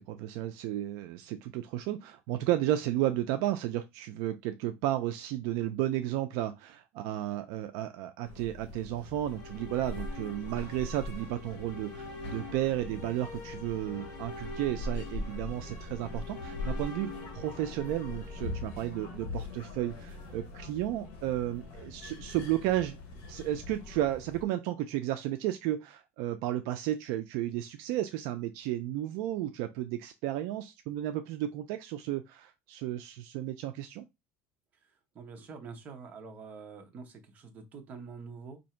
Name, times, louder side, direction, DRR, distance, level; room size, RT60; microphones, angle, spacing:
voice 1, 0.1-23.0 23.3-34.0, right 13 dB, 65° right, 0.3 m, -33 dB
sound 1, 8.2-24.4, left 2 dB, 70° left, 1.1 m, -42 dB
sound 2, 9.1-19.3, left 3 dB, 35° left, 1.8 m, -46 dB
voice 2, 34.8-38.6, right 5 dB, 30° right, 0.7 m, -46 dB
2.8 x 2.6 x 4.3 m
cardioid pair, 170°, 6 cm